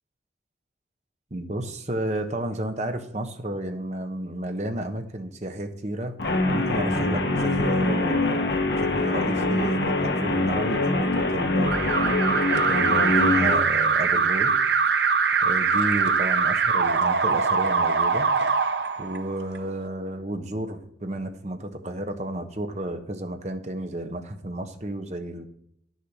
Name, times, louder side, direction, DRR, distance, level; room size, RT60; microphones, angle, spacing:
voice 1, 1.3-6.2 6.5-12.1 12.7-14.5 15.4-18.3 19.0-25.5, right 1 dB, 40° right, 7 dB, 1.0 m, -32 dB
Guitar, 6.2-13.6, left 2 dB, 65° left, 1.4 m, -24 dB
Alarm, 11.7-19.6, right 5 dB, 70° right, 0.6 m, -22 dB
9.7 x 6.7 x 6.0 m, 0.72 s
head